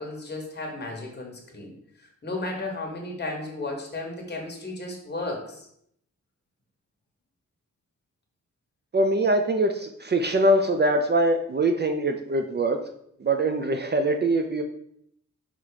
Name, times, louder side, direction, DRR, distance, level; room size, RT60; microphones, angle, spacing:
voice 1, 0.0-1.7 2.2-5.7, left 2 dB, 35° left, 0 dB, 1.4 m, -34 dB
voice 2, 8.9-12.8 13.2-14.6, right 1 dB, 35° right, 5 dB, 0.4 m, -23 dB
5.6 x 3.5 x 4.9 m, 0.70 s
wide cardioid pair, 175°, 30 cm